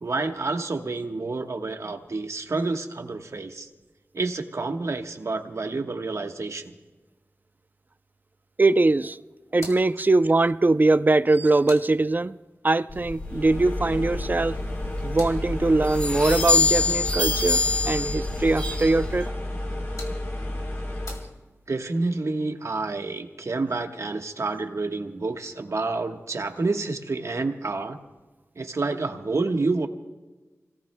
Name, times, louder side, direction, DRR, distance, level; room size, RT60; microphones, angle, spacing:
voice 1, 0.0-3.7 4.1-6.7 21.7-28.0 28.6-29.9, right 3 dB, 70° right, 1.2 m, -29 dB
voice 2, 8.6-9.2 9.5-12.4 12.6-14.6 15.0-19.3, right 2 dB, 35° right, 0.5 m, -22 dB
sound 1, 9.5-12.6 14.6-17.5 19.5-21.9, left 2 dB, 85° left, 2.0 m, -48 dB
sound 2, 12.9-19.3, left 3 dB, 25° left, 2.0 m, -27 dB
sound 3, 13.2-21.3, left 1 dB, 45° left, 3.5 m, -31 dB
29.0 x 18.0 x 2.2 m
wide cardioid pair, 60°, 5 cm